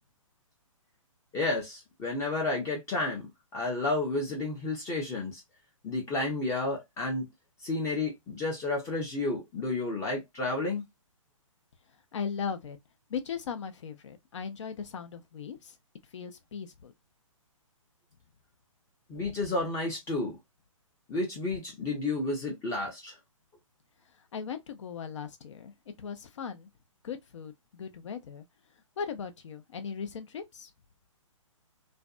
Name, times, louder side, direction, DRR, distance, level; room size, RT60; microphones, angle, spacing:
voice 1, 1.3-3.3 3.5-5.4 5.8-7.3 7.6-10.8 19.1-20.4 21.1-23.1, left 2 dB, 15° left, 0.6 m, -31 dB
voice 2, 12.1-12.8 13.1-15.7 16.1-16.9 24.3-25.7 26.0-26.7 27.0-28.4 29.0-30.7, left 6 dB, 60° left, 0.7 m, -38 dB
2.5 x 2.2 x 2.4 m
hypercardioid pair, 140°, 17 cm